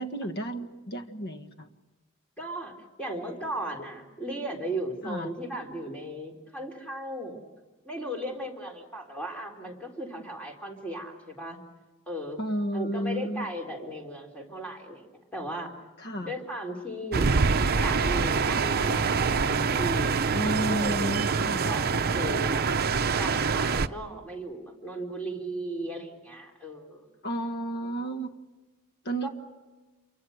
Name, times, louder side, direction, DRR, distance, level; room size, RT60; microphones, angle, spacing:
voice 1, 0.0-1.7 5.0-5.3 12.4-13.5 16.0-16.3 20.3-21.7 27.2-28.3 29.0-29.3, right 1 dB, 55° left, 8 dB, 1.6 m, -32 dB
voice 2, 2.4-2.7 3.0-7.4 7.8-11.6 12.1-12.4 12.7-15.1 15.3-15.7 16.2-17.3 17.7-21.2 21.7-22.7 23.2-27.1 29.2-29.3, right 1 dB, 5° left, 1 dB, 3.9 m, -36 dB
sound 1, 17.1-23.9, right 5 dB, 50° right, 0.7 m, -25 dB
28.0 x 24.5 x 6.5 m, 1.2 s
head